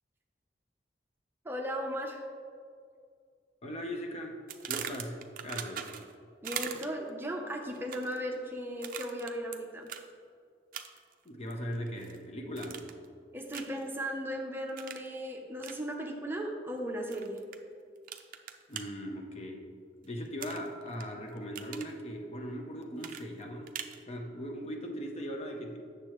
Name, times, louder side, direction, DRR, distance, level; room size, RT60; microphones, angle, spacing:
voice 1, 1.4-2.3 6.4-9.9 13.3-17.4, equal, 10° right, 1 dB, 0.6 m, -36 dB
voice 2, 3.6-4.4 4.7-5.9 11.2-12.8 18.7-19.7 20.0-23.7 24.1-25.8, equal, 35° left, 2 dB, 0.7 m, -39 dB
sound 1, 4.5-6.1 6.4-7.1 7.7-8.2 8.8-9.6 9.9-10.0 10.7-11.1 11.5-12.2 12.6-13.0 13.5-13.8 14.8-15.1 15.6-15.8 17.1-17.6 18.1-18.8 20.4-21.0 21.4-21.9 23.0-24.0, right 8 dB, 50° right, 0.4 m, -40 dB
8.2 x 6.6 x 3.0 m, 2.2 s
head